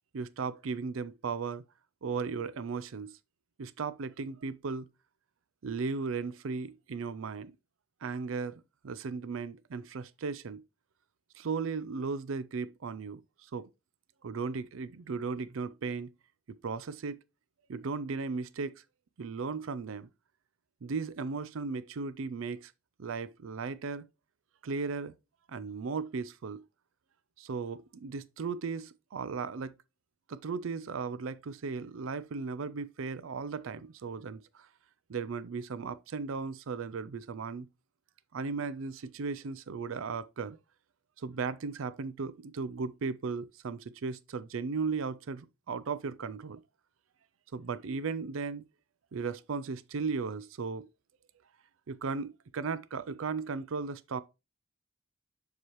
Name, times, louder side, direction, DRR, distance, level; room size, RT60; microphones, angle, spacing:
voice 1, 0.1-1.6 2.0-3.2 3.6-4.9 5.6-7.6 8.0-10.6 11.4-13.7 14.2-16.1 16.5-17.2 17.7-18.8 19.2-20.1 20.8-22.7 23.0-24.1 24.6-25.1 25.5-26.6 27.4-29.7 30.3-34.7 35.1-37.7 38.3-40.6 41.2-46.6 47.5-48.6 49.1-50.9 51.9-54.2, right 4 dB, 80° right, 0.5 m, -36 dB
7.1 x 4.8 x 3.0 m
head